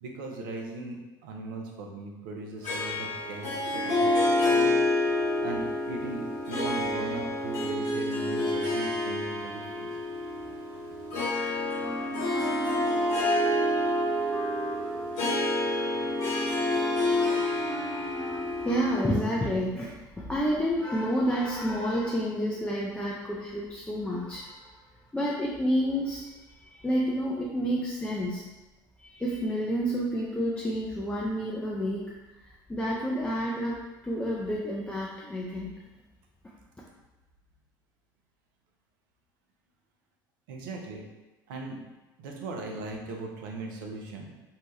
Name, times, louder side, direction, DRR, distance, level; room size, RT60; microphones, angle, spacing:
voice 1, 0.0-4.8 5.4-9.9 15.9-16.7 40.5-41.0 41.5-41.8 42.2-44.3, right 2 dB, 70° right, 1 dB, 0.5 m, -39 dB
Harp, 2.6-19.4, left 1 dB, 65° left, 1.0 m, -28 dB
Wind instrument woodwind instrument, 11.8-13.5 13.8-19.2, left 3 dB, 35° left, 1.0 m, -41 dB
voice 2, 18.6-24.7 25.1-26.2 26.5-28.4 29.0-32.0 32.5-35.7, equal, 10° left, -5 dB, 0.4 m, -29 dB
2.7 x 2.1 x 3.2 m, 1.1 s
hypercardioid pair, 65°, 11 cm